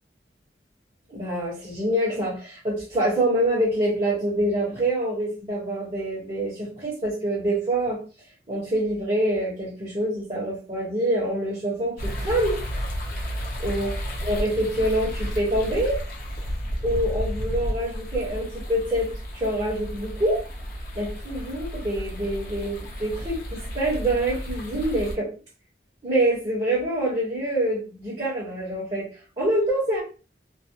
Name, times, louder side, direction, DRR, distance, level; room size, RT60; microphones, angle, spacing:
voice 1, 1.1-8.0 8.5-12.6 13.2-13.3 13.6-13.9 14.2-16.0 16.8-19.1 19.3-20.4 20.9-25.3 26.0-29.1 29.4-30.0, right 1 dB, 30° right, -9 dB, 1.0 m, -25 dB
sound 1, 12.0-25.2, equal, 55° left, 0.7 m, -32 dB
2.4 x 2.1 x 2.8 m, 0.36 s
head